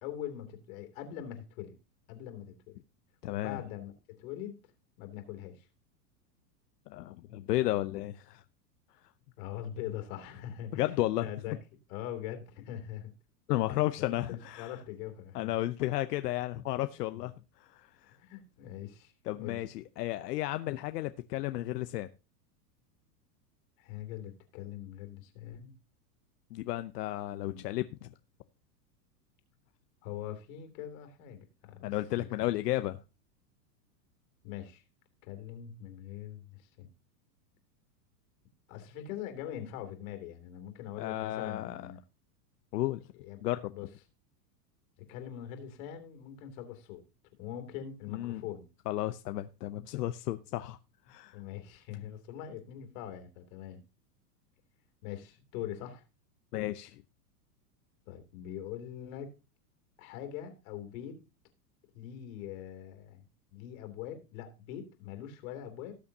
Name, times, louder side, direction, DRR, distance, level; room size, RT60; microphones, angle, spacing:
voice 1, 0.0-1.8 2.1-2.7 3.3-4.6 5.0-5.7 9.4-10.9 11.2-11.5 11.9-13.1 13.7-15.5 17.1-17.3 18.2-19.6 23.8-25.7 27.3-27.7 30.0-32.5 34.4-34.8 35.2-36.9 38.7-42.0 43.2-43.4 43.7-43.9 45.0-47.0 47.4-48.7 51.3-53.8 55.0-56.0 58.1-59.3 60.0-61.2 61.9-63.2 63.5-66.0, left 10 dB, 55° left, 7 dB, 3.1 m, -42 dB
voice 2, 3.2-3.6 6.9-8.4 10.7-11.3 13.5-14.7 15.3-18.1 19.3-22.1 26.5-28.1 31.8-33.0 41.0-41.8 42.7-43.0 43.4-43.7 48.1-48.4 48.9-50.8 51.1-51.4 56.5-57.0, left 15 dB, 75° left, 10 dB, 0.9 m, -33 dB
18.5 x 7.0 x 2.8 m, 0.30 s
supercardioid pair, 140°, 48 cm